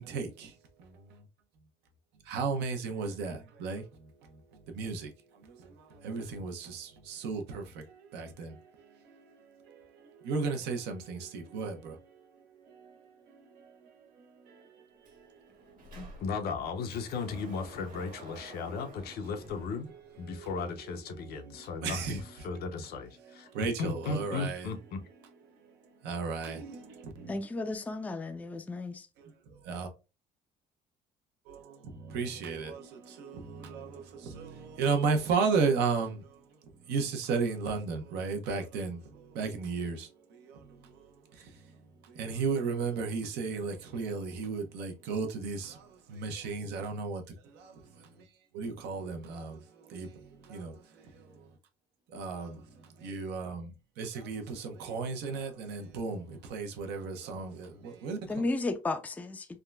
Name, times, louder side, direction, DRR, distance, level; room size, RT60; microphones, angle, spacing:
voice 1, 2.3-3.3 3.6-3.8 4.8-4.9 6.1-6.5 7.2-7.4 10.3-11.2 11.5-11.7 21.8-22.1 23.6-24.6 26.1-26.6 29.7-29.9 32.1-32.7 34.8-36.1 36.9-38.9 39.4-39.9 42.3-45.6 46.3-47.2 48.6-49.2 49.9-50.1 52.2-52.5 53.0-53.6 54.0-54.4 54.9-56.2 56.5-57.5 58.0-58.2, right 5 dB, 85° right, 0.8 m, -32 dB
Sliding door, 15.0-15.2 15.5-20.5, right 2 dB, 55° right, 1.2 m, -51 dB
voice 2, 15.9-19.9 20.2-23.5 23.8-25.0, left 4 dB, 70° left, 0.7 m, -36 dB
voice 3, 27.3-29.1 58.3-59.5, left 2 dB, 10° left, 0.4 m, -33 dB
3.6 x 2.2 x 2.2 m
cardioid pair, 110°, 17 cm